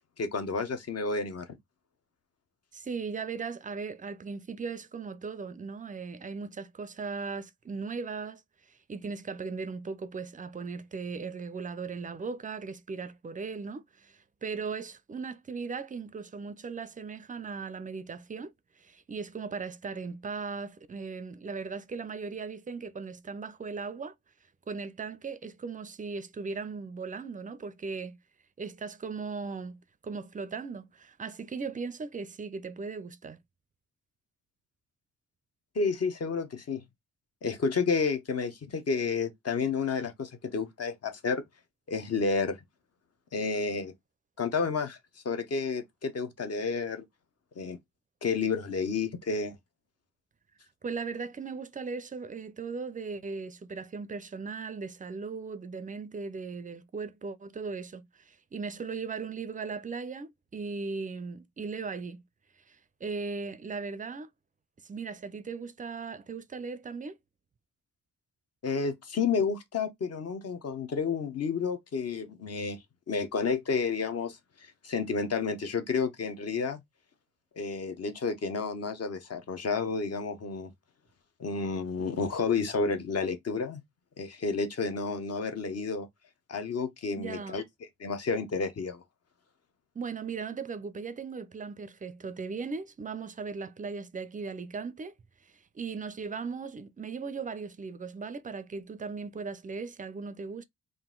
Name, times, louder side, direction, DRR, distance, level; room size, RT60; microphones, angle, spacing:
voice 1, 0.2-1.4 35.7-36.8 37.4-41.4 41.9-42.6 43.3-43.9 44.4-45.0 45.2-47.0 47.6-47.8 48.2-49.5 68.6-72.8 73.1-76.8 77.6-80.7 81.4-83.8 84.2-86.1 86.5-87.6 88.0-89.0, left 5 dB, 50° left, 0.7 m, -30 dB
voice 2, 2.7-8.4 8.9-24.1 24.7-28.2 28.6-33.4 50.8-62.2 62.7-64.3 64.8-67.2 87.1-87.6 90.0-95.1 95.7-100.6, right 4 dB, 25° right, 0.4 m, -38 dB
3.8 x 2.5 x 3.6 m
wide cardioid pair, 160°, 31 cm